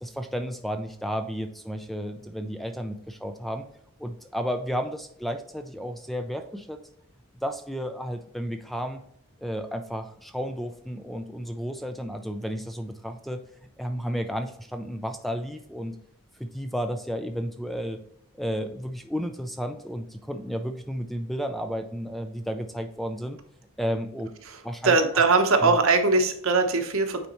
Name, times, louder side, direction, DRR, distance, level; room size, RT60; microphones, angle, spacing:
voice 1, 0.0-3.7 4.0-6.8 7.4-9.0 9.4-13.4 13.8-15.9 16.4-18.0 18.3-23.4 23.8-24.3 24.6-25.2 25.6-25.7, equal, ahead, 7 dB, 0.4 m, -32 dB
voice 2, 24.8-27.3, right 3 dB, 70° right, 5 dB, 1.0 m, -21 dB
8.8 x 4.2 x 3.0 m, 0.70 s
head